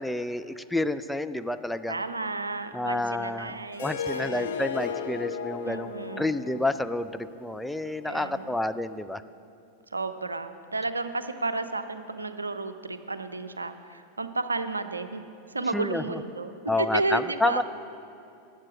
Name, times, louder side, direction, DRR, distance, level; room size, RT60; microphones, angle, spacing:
voice 1, 0.0-2.0 2.7-9.2 15.7-16.2 16.7-17.6, left 2 dB, 5° left, 10 dB, 0.3 m, -29 dB
voice 2, 1.9-4.7 5.6-6.4 8.0-8.6 9.9-16.5 16.8-17.6, right 3 dB, 80° right, 10 dB, 0.6 m, -32 dB
Harp, 3.7-8.9, left 6 dB, 60° left, 0.7 m, -36 dB
12.0 x 8.8 x 6.1 m, 2.6 s
figure-of-eight pair, 90°, 0 cm